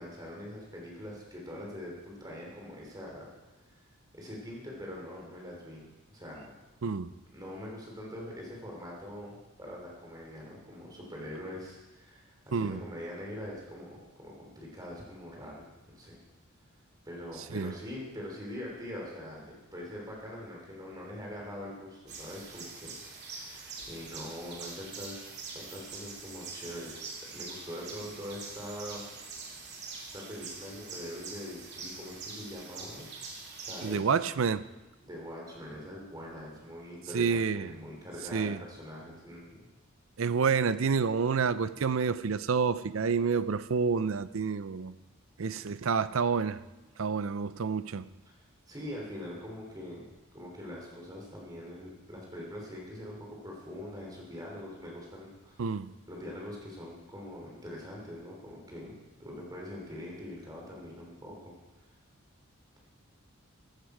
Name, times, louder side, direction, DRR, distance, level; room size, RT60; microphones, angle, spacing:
voice 1, 0.0-3.3 3.7-3.8 4.1-6.5 7.3-16.2 17.0-27.0 27.3-29.0 30.0-33.1 33.6-34.1 35.0-39.7 48.2-48.4 48.7-50.1 50.3-55.7 56.1-61.5, left 1 dB, 20° right, 3.2 m, -43 dB
sound 1, 22.1-34.0, right 4 dB, 50° right, 2.5 m, -44 dB
voice 2, 33.8-34.6 37.1-37.7 38.3-38.6 40.2-44.9 45.4-46.6 47.0-48.1 55.6-55.9, right 5 dB, 70° right, 0.5 m, -28 dB
15.0 x 11.0 x 4.9 m
head